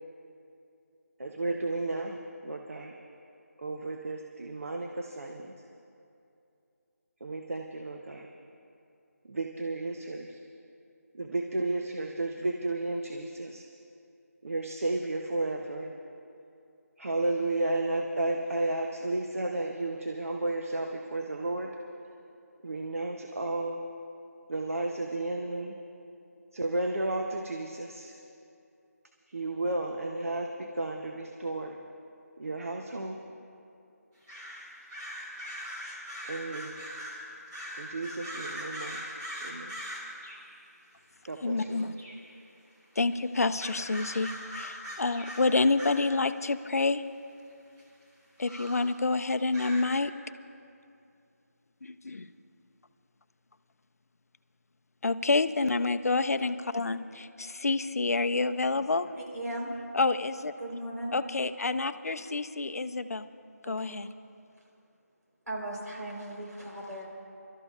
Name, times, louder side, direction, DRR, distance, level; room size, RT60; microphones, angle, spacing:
voice 1, 1.2-2.9 3.6-5.5 7.2-8.3 9.3-10.4 11.2-13.6 14.4-15.9 17.0-21.7 22.6-23.8 24.5-25.8 26.5-28.1 29.3-31.8 32.4-33.2 36.3-36.8 37.8-39.0 39.4-39.7 41.3-41.9, right 2 dB, 55° right, 2 dB, 0.8 m, -33 dB
sound 1, 34.3-40.5 41.6-41.7 42.0-42.3 43.0-43.2 43.5-46.3 46.9-47.0 47.8-47.9 48.4-48.9 49.5-49.8, equal, 10° right, 0.9 m, -41 dB
voice 2, 41.4-41.9 43.0-47.0 48.4-50.1 51.8-52.3 55.0-59.1 59.9-60.5 61.1-63.2 63.7-64.1, left 3 dB, 65° left, 11 dB, 0.5 m, -28 dB
voice 3, 59.2-59.7 60.6-61.2 63.6-64.0 65.5-67.1, right 1 dB, 85° right, -2 dB, 3.8 m, -37 dB
28.5 x 13.0 x 2.4 m, 2.6 s
figure-of-eight pair, 170°, 9 cm